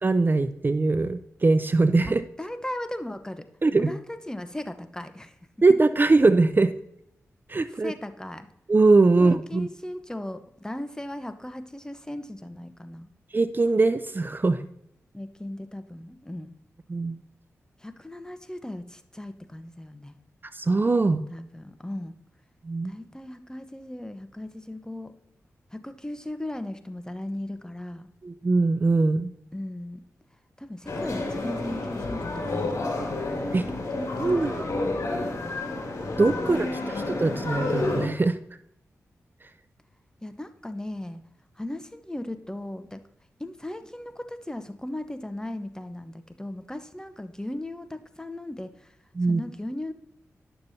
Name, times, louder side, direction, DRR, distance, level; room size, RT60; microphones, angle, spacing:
voice 1, 0.0-2.2 3.6-3.9 5.6-6.7 7.5-7.9 8.7-9.7 13.3-14.6 16.9-17.2 20.5-21.2 22.6-22.9 28.2-29.3 33.5-33.6 34.2-34.8 36.2-38.4 49.2-49.4, right 3 dB, 35° right, 11 dB, 0.5 m, -22 dB
voice 2, 2.4-3.5 3.8-5.4 7.8-8.5 9.2-13.1 15.1-16.5 17.8-20.2 21.3-22.2 22.8-25.1 25.7-28.1 29.5-30.0 30.6-33.1 36.4-36.9 40.2-41.2 41.6-43.0 43.4-49.0 49.3-49.9, left 1 dB, 10° left, 9 dB, 0.9 m, -37 dB
sound 1, 30.9-38.1, left 2 dB, 65° left, 2.0 m, -30 dB
10.5 x 6.8 x 2.8 m, 0.79 s
cardioid pair, 45°, 6 cm